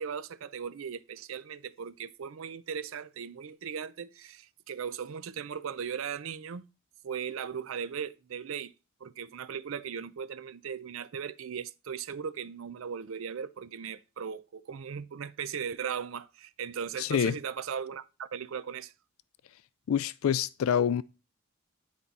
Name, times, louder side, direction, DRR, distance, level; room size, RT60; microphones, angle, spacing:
voice 1, 0.0-6.6 7.0-8.7 9.0-18.9, right 7 dB, 70° right, 0.5 m, -38 dB
voice 2, 17.0-17.4 19.9-21.0, left 8 dB, 75° left, 0.3 m, -26 dB
10.0 x 4.4 x 4.1 m
head